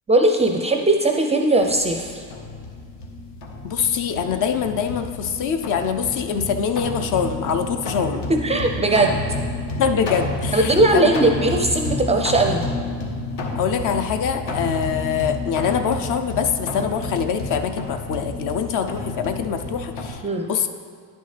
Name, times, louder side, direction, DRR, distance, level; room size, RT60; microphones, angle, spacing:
voice 1, 0.1-2.2 8.3-9.2 10.5-12.6 20.2-20.5, right 2 dB, 15° right, 3 dB, 0.4 m, -19 dB
sound 1, 1.6-20.1, left 2 dB, 70° left, 1.3 m, -30 dB
voice 2, 3.6-8.2 9.8-11.1 13.5-20.2 20.5-20.7, left 7 dB, 45° left, 7 dB, 0.5 m, -24 dB
10.0 x 5.3 x 3.3 m, 2.1 s
supercardioid pair, 100°, 44 cm